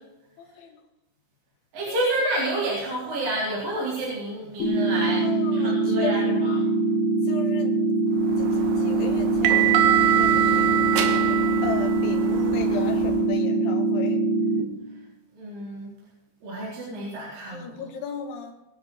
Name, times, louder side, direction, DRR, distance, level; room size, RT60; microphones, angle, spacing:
voice 1, 0.4-0.8 1.9-2.4 5.1-6.4 7.3-7.8 8.4-11.0 11.6-14.2 16.9-17.2 17.5-18.5, left 6 dB, 70° left, 1 dB, 4.3 m, -36 dB
voice 2, 1.7-6.6 15.4-15.9 16.4-17.7, right 1 dB, 45° right, -5 dB, 5.5 m, -29 dB
sound 1, 4.6-14.6, right 2 dB, 55° left, 4.0 m, -23 dB
sound 2, 8.4-13.2, right 11 dB, 90° right, 4.3 m, -24 dB
23.0 x 10.0 x 4.8 m, 0.96 s
omnidirectional pair, 5.8 m